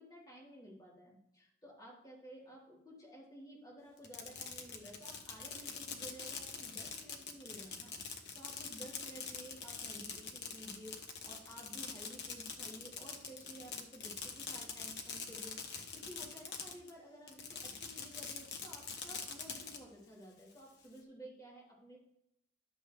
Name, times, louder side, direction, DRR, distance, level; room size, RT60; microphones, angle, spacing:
voice 1, 0.0-22.0, equal, 20° left, -6 dB, 3.5 m, -54 dB
Fireworks, 4.0-16.9 17.3-19.8, left 5 dB, 65° left, 1.0 m, -44 dB
11.0 x 6.9 x 3.2 m, 0.79 s
head